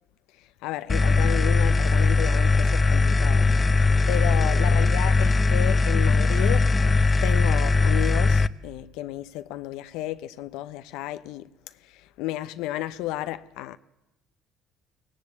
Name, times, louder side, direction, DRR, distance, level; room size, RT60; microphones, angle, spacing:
voice 1, 0.6-6.7 7.2-11.5 11.8-13.8, left 15 dB, 80° left, 0.7 m, -32 dB
sound 1, 0.9-8.5, left 3 dB, 30° left, 0.7 m, -20 dB
23.0 x 17.0 x 8.0 m
supercardioid pair, 70°, 0 cm